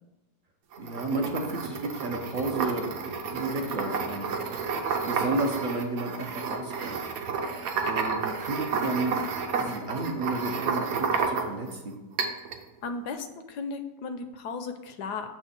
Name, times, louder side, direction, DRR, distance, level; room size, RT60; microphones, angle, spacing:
sound 1, 0.7-11.7 12.2-12.6, right 5 dB, 65° right, 1.1 m, -31 dB
voice 1, 0.8-4.3 5.0-7.0 7.9-11.9, right 2 dB, 45° right, 1 dB, 0.7 m, -32 dB
voice 2, 12.8-15.3, left 4 dB, 75° left, 8 dB, 1.2 m, -35 dB
7.1 x 3.2 x 5.8 m, 1.0 s
omnidirectional pair, 1.8 m